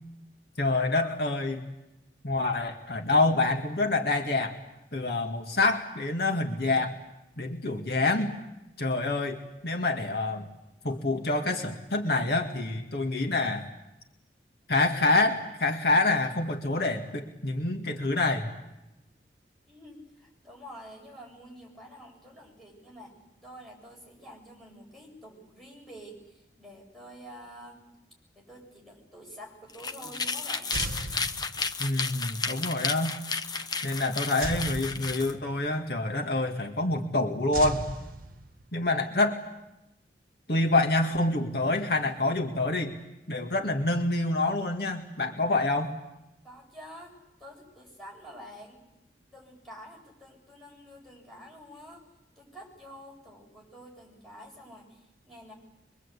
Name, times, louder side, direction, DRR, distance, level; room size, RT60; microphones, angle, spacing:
voice 1, 0.6-1.7 2.2-4.5 4.9-6.9 7.4-8.3 8.8-10.5 10.8-13.7 14.7-18.5 31.8-33.2 33.8-37.8 38.7-39.4 40.5-42.9 43.3-45.9, left 2 dB, 65° left, 1 dB, 2.0 m, -27 dB
voice 2, 19.7-23.1 23.4-27.8 28.3-30.8 46.4-48.8 49.3-52.0 52.4-55.5, equal, ahead, -3 dB, 7.7 m, -48 dB
sound 1, 29.7-35.3, left 4 dB, 25° left, 0.9 m, -33 dB
sound 2, 30.7-32.0 34.4-35.7 37.5-38.8, right 2 dB, 50° right, 1.3 m, -37 dB
24.5 x 23.0 x 8.3 m, 0.93 s
head